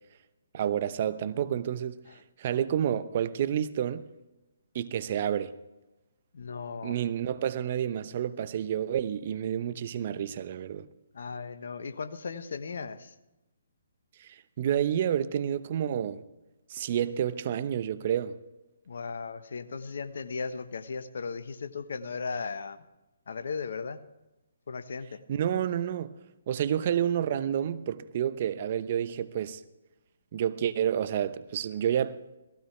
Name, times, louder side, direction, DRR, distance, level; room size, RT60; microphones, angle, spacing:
voice 1, 0.5-2.0 2.4-4.0 4.7-5.5 6.8-10.9 14.2-16.2 16.7-18.4 25.3-26.1 26.5-29.6 30.3-32.4, right 9 dB, 45° right, 0.9 m, -29 dB
voice 2, 6.3-7.0 11.1-13.1 18.9-22.8 23.3-24.0 24.7-25.2, left 5 dB, 65° left, 1.2 m, -36 dB
17.5 x 15.5 x 3.3 m
figure-of-eight pair, 140°, 0 cm